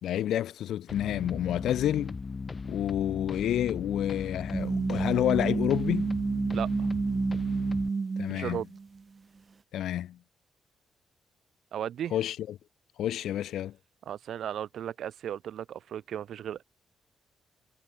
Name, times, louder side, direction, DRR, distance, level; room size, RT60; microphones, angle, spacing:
voice 1, 0.0-2.1 2.7-6.1 8.2-8.6 9.7-10.2 12.1-12.6 13.0-13.7, left 11 dB, 85° left, 3.1 m, -29 dB
sound 1, 0.9-7.9, left 4 dB, 30° left, 3.8 m, -37 dB
sound 2, 4.5-9.0, right 4 dB, 35° right, 4.8 m, -30 dB
voice 2, 6.5-6.9 8.3-8.7 11.7-12.1 14.1-16.6, right 10 dB, 70° right, 5.1 m, -35 dB
cardioid pair, 115°, 0 cm